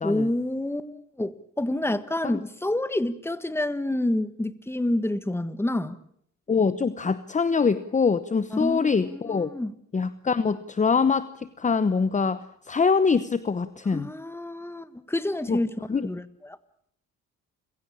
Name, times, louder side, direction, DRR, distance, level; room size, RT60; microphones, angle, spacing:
voice 1, 0.0-6.0 8.5-9.7 13.9-15.7 16.0-16.6, left 1 dB, 10° left, 1.6 m, -28 dB
voice 2, 6.5-9.5 9.9-14.1 15.5-15.6 15.9-16.1, left 5 dB, 25° left, 1.0 m, -24 dB
29.0 x 16.5 x 8.7 m
cardioid pair, 90°, 30 cm